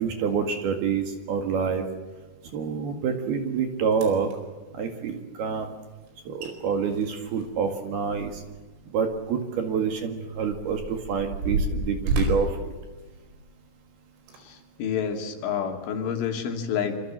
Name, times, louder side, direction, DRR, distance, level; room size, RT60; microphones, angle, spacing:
voice 1, 0.0-1.8 2.5-4.3 4.7-5.7 6.3-8.4 8.9-12.7, right 6 dB, 60° right, 5 dB, 3.4 m, -27 dB
sound 1, 3.5-3.6 3.9-4.4 6.1-6.2 6.4-6.5 6.9-8.7 9.0-9.1 9.8-13.6 14.2-14.4 15.0-15.1, right 1 dB, 85° right, 7.4 m, -30 dB
voice 2, 14.4-17.1, left 7 dB, 70° left, 4 dB, 4.8 m, -29 dB
26.5 x 26.5 x 7.5 m, 1.3 s
omnidirectional pair, 6.0 m